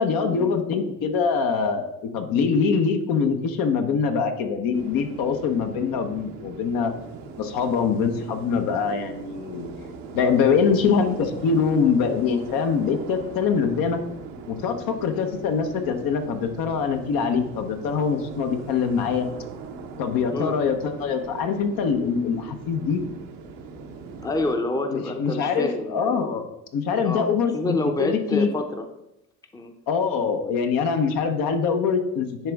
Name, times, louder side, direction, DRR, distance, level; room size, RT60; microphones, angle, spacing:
voice 1, 0.0-6.9 7.4-9.7 10.1-14.0 14.5-19.3 20.0-23.0 24.9-26.5 26.7-28.5 29.9-32.5, left 6 dB, 70° left, 6 dB, 1.0 m, -24 dB
sound 1, 4.7-24.6, right 4 dB, 90° right, 0.9 m, -40 dB
voice 2, 24.2-26.3 27.0-27.3 27.5-28.8 29.5-29.7, left 2 dB, 10° left, 6 dB, 0.6 m, -27 dB
10.0 x 3.4 x 3.5 m, 0.88 s
supercardioid pair, 80°, 36 cm